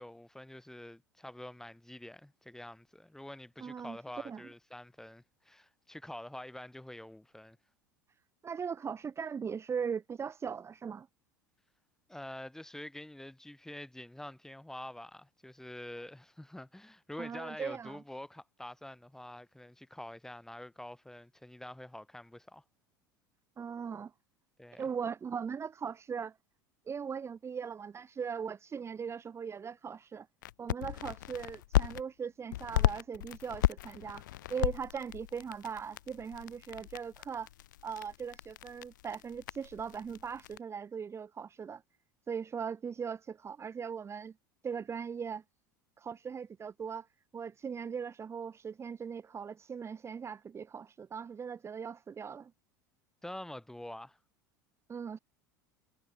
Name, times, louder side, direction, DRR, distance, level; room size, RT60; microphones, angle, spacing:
voice 1, 0.0-7.6 12.1-22.6 24.6-24.8 53.2-54.2, left 1 dB, 5° left, 5.5 m, -46 dB
voice 2, 3.6-4.0 4.2-4.4 8.4-11.1 17.2-18.0 23.6-24.1 24.8-26.4 26.9-30.3 30.6-37.5 37.8-41.8 42.3-44.3 44.6-45.4 46.0-47.1 47.3-52.5 54.9-55.2, right 6 dB, 25° right, 1.6 m, -39 dB
sound 1, 30.4-32.0 32.5-40.6, left 14 dB, 70° left, 1.4 m, -35 dB
figure-of-eight pair, 75°, 11 cm